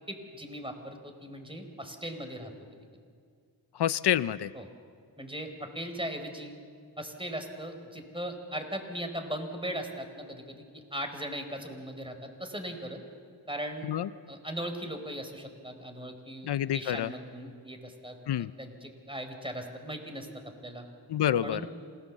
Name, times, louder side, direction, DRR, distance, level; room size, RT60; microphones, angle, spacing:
voice 1, 0.1-2.8 4.5-4.7 5.2-6.5 7.0-13.0 13.5-13.9 14.3-18.2 18.6-20.8 21.4-21.7, right 1 dB, 15° right, 5 dB, 4.4 m, -39 dB
voice 2, 3.7-4.5 13.8-14.1 16.4-17.1 18.3-18.5 21.1-21.6, left 11 dB, 85° left, 16 dB, 0.6 m, -28 dB
27.0 x 18.5 x 7.3 m, 2.2 s
cardioid pair, 40°, 39 cm